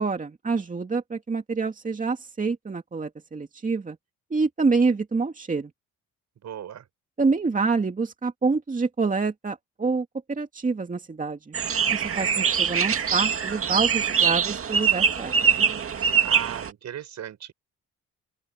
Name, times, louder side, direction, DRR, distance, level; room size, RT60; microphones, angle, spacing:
voice 1, 0.0-4.0 4.3-5.7 7.2-11.6 11.9-15.3, right 4 dB, 25° right, 2.3 m, -27 dB
voice 2, 6.4-6.8 15.3-17.5, right 10 dB, 65° right, 6.5 m, -38 dB
sound 1, 11.5-16.7, right 7 dB, 45° right, 2.2 m, -23 dB
open air
cardioid pair, 90°, 30 cm